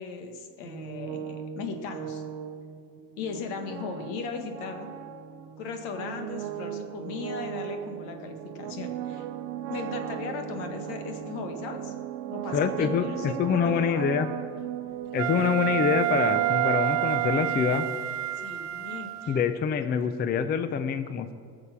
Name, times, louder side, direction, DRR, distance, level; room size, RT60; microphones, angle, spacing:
voice 1, 0.0-2.2 3.2-4.9 5.6-9.3 9.7-11.9 12.3-14.1 18.4-19.4, left 4 dB, 75° left, 5 dB, 1.8 m, -37 dB
sound 1, 0.6-18.3, right 10 dB, 60° right, 0.8 m, -37 dB
voice 2, 12.5-14.3 15.1-17.8 19.3-21.3, left 7 dB, 25° left, 10 dB, 0.4 m, -26 dB
Wind instrument woodwind instrument, 15.2-19.5, right 15 dB, 40° right, 0.4 m, -28 dB
18.5 x 7.0 x 5.7 m, 2.2 s
cardioid pair, 125°, 45 cm